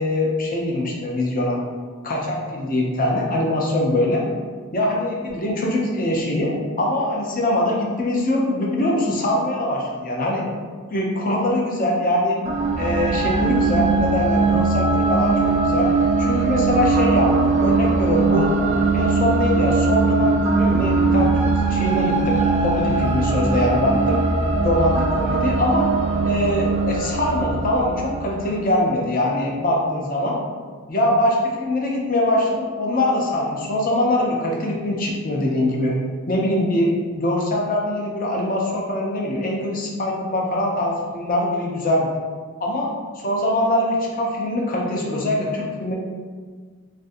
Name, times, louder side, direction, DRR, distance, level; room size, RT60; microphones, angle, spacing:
voice 1, 0.0-1.6 2.0-4.2 4.7-10.5 10.9-12.4 12.8-15.9 16.2-18.5 18.9-24.2 24.6-25.9 26.2-30.4 30.9-35.9 36.3-42.1 42.6-42.9 43.2-45.9, left 1 dB, 40° left, -2 dB, 0.6 m, -22 dB
sound 1, 12.4-28.7, right 3 dB, 30° right, 0.3 m, -20 dB
3.2 x 2.6 x 2.6 m, 1.5 s
head